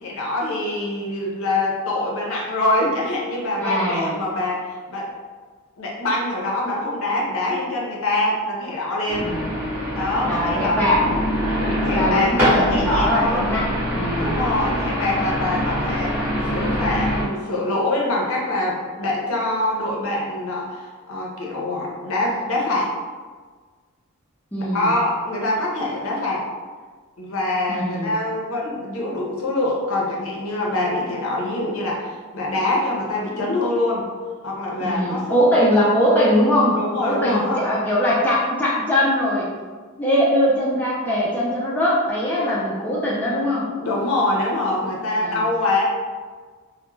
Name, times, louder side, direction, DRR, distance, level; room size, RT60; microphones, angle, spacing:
voice 1, 0.0-5.1 5.8-9.3 9.9-11.0 11.5-13.5 14.2-22.9 24.7-26.5 27.2-34.0 34.4-35.7 36.8-37.6 43.8-45.9, left 2 dB, 60° left, -3 dB, 0.5 m, -24 dB
voice 2, 3.6-4.2 9.2-9.6 10.2-11.1 11.9-14.4 24.5-25.0 27.7-28.2 34.8-39.5 40.0-43.7 45.2-45.5, equal, 10° left, -7 dB, 0.3 m, -21 dB
sound 1, 9.1-17.2, equal, 10° right, 0.7 m, -24 dB
2.2 x 2.0 x 3.0 m, 1.5 s
head